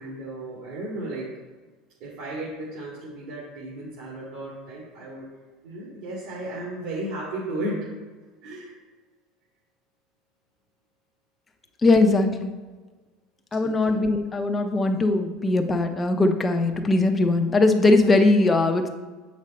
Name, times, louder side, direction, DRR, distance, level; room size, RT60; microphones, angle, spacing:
voice 1, 0.0-1.3 2.0-5.3 5.6-7.9 8.4-8.7 13.6-14.0, right 1 dB, 70° right, -6 dB, 2.1 m, -34 dB
voice 2, 11.8-12.5 13.5-18.9, left 2 dB, 15° left, 5 dB, 0.6 m, -20 dB
7.3 x 5.2 x 4.2 m, 1.3 s
cardioid pair, 155°, 0 cm